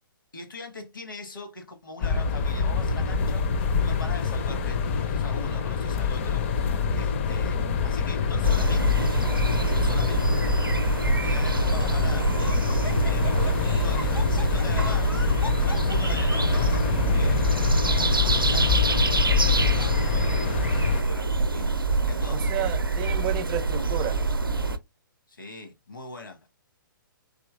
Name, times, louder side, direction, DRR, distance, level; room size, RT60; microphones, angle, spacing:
voice 1, 0.3-9.1 9.7-10.8 11.0-12.4 12.6-15.3 15.6-16.6 17.1-19.2 19.5-22.6 23.1-23.3 25.3-26.5, left 3 dB, 70° left, 1.2 m, -42 dB
sound 1, 2.0-21.0, left 6 dB, 35° left, 0.5 m, -25 dB
sound 2, 8.4-24.8, right 3 dB, 85° right, 0.5 m, -26 dB
Laughter, 9.0-9.5 10.1-10.2 11.4-17.0, left 1 dB, 90° left, 1.2 m, -40 dB
voice 2, 22.3-24.2, right 11 dB, 25° right, 0.4 m, -31 dB
4.4 x 2.9 x 2.3 m
figure-of-eight pair, 120°, 11 cm